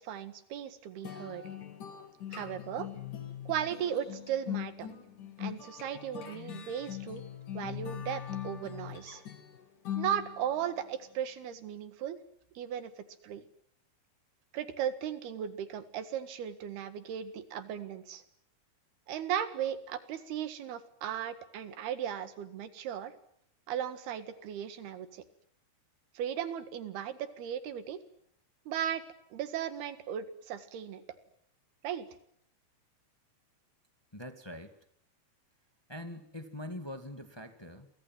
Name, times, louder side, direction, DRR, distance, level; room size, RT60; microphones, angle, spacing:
voice 1, 0.0-1.4 2.3-2.9 3.5-4.9 5.4-7.2 7.5-9.2 10.0-12.2 12.6-12.9 13.2-13.4 14.5-18.2 19.1-23.1 23.7-25.2 26.2-28.0 28.7-29.1 29.3-31.0 31.8-32.1, right 9 dB, 90° right, 11 dB, 3.8 m, -36 dB
sound 1, 1.0-10.7, left 10 dB, 60° left, 4.3 m, -41 dB
voice 2, 34.1-34.8 35.9-37.9, left 1 dB, 20° left, 8 dB, 0.7 m, -43 dB
28.5 x 24.0 x 7.6 m, 0.70 s
omnidirectional pair, 4.4 m